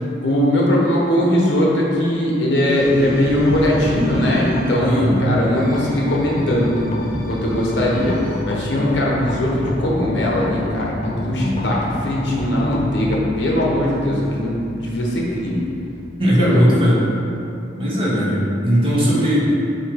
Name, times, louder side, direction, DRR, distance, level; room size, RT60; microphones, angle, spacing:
voice 1, 0.2-6.9 7.3-15.7 16.4-16.7, left 1 dB, 65° left, -4 dB, 1.2 m, -19 dB
sound 1, 2.6-8.4, equal, 50° right, 1.1 m, -34 dB
sound 2, 3.3-17.2, left 1 dB, 35° left, 0.4 m, -31 dB
voice 2, 4.8-5.2 11.4-11.8 16.2-17.0 17.8-19.4, equal, 30° right, -7 dB, 1.4 m, -18 dB
7.8 x 3.2 x 4.8 m, 2.8 s
head